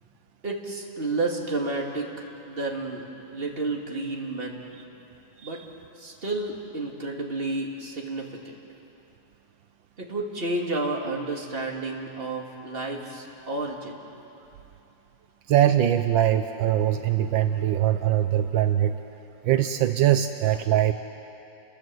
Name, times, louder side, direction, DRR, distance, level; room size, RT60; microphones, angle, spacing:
voice 1, 0.4-5.0 5.4-5.6 6.0-8.5 10.0-14.0, right 2 dB, 30° right, 0 dB, 2.7 m, -31 dB
voice 2, 15.5-19.0 19.4-20.9, right 11 dB, 80° right, 8 dB, 1.5 m, -22 dB
29.5 x 21.5 x 7.8 m, 2.9 s
omnidirectional pair, 2.1 m